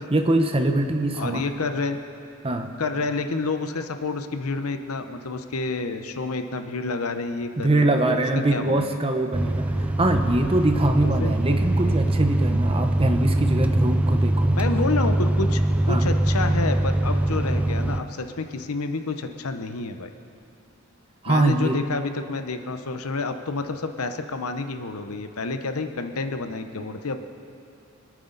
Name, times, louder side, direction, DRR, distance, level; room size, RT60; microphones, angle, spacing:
voice 1, 0.1-1.5 2.4-2.7 7.6-14.6 15.9-16.1 21.2-21.8, right 1 dB, 25° right, 6 dB, 0.9 m, -23 dB
voice 2, 1.2-2.0 2.8-8.2 8.5-8.9 11.0-11.3 14.6-15.6 15.9-20.1 21.3-27.3, left 3 dB, 85° left, 8 dB, 0.9 m, -29 dB
sound 1, 9.3-18.0, right 1 dB, 5° right, 0.4 m, -22 dB
25.5 x 9.4 x 4.0 m, 2.6 s
head